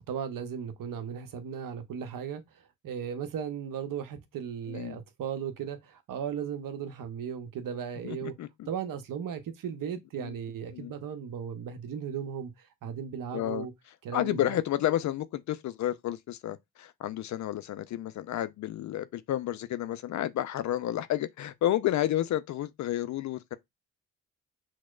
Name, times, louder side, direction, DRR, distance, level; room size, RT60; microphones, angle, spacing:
voice 1, 0.1-8.3 8.7-13.7 14.0-14.6, right 8 dB, 55° right, 0.9 m, -36 dB
voice 2, 4.7-5.0 8.0-8.7 10.2-10.3 10.7-10.9 13.3-13.7 14.1-23.6, left 12 dB, 50° left, 0.4 m, -31 dB
6.0 x 2.1 x 2.3 m
hypercardioid pair, 45°, 39 cm